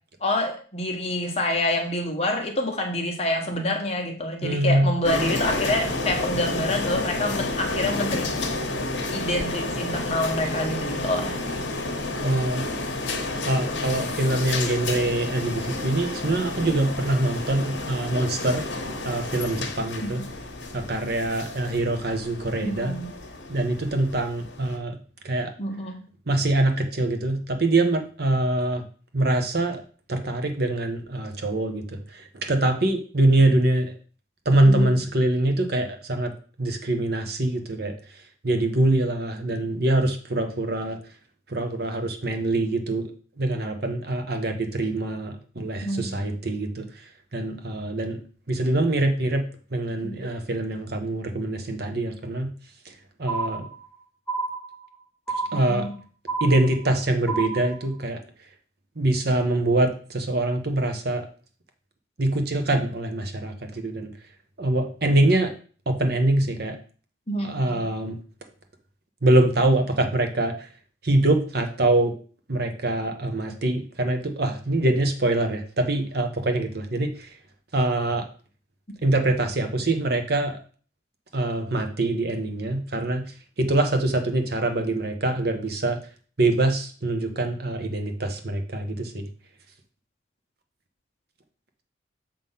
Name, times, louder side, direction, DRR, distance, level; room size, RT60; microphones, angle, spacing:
voice 1, 0.2-8.3 9.1-11.4 20.0-20.3 22.6-23.1 25.6-26.0 34.6-34.9 45.8-46.3 50.0-50.2 55.5-56.0 67.3-67.8, left 1 dB, 35° left, 2 dB, 1.2 m, -27 dB
voice 2, 4.4-4.9 12.2-12.7 13.4-18.7 19.0-20.2 20.7-23.0 23.5-25.0 25.2-25.5 26.3-28.8 29.1-29.8 30.1-33.9 34.4-36.3 36.6-37.9 38.4-41.0 41.5-43.1 43.4-47.0 47.3-48.2 48.5-49.4 49.7-52.5 52.9-53.0 53.2-53.7 55.5-55.9 56.4-58.2 59.0-61.3 62.2-64.1 64.6-65.5 65.9-66.8 67.4-68.2 69.2-70.7 71.0-72.1 72.5-77.3 77.7-78.2 79.0-80.5 81.3-83.3 83.6-86.0 86.4-89.3, right 2 dB, 55° right, 6 dB, 1.0 m, -24 dB
sound 1, 5.0-24.8, left 2 dB, 70° left, 1.2 m, -30 dB
sound 2, 53.3-54.0 54.3-55.0 55.3-56.0 56.3-57.0 57.3-58.0, right 3 dB, 10° left, 1.0 m, -30 dB
7.0 x 3.7 x 5.6 m, 0.41 s
head